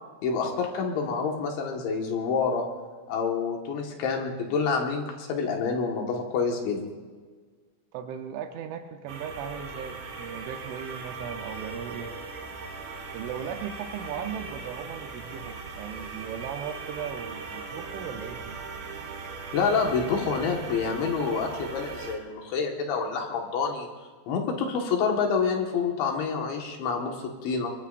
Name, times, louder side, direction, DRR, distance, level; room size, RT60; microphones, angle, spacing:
voice 1, 0.2-2.6 3.1-6.8 19.5-23.9 24.3-27.7, left 5 dB, 65° left, 1 dB, 3.7 m, -27 dB
voice 2, 7.9-12.1 13.1-18.6 20.1-20.2, right 8 dB, 75° right, 5 dB, 3.1 m, -37 dB
sound 1, 9.1-22.2, right 4 dB, 45° right, 3.3 m, -39 dB
23.0 x 22.0 x 2.6 m, 1.4 s
omnidirectional pair, 6.0 m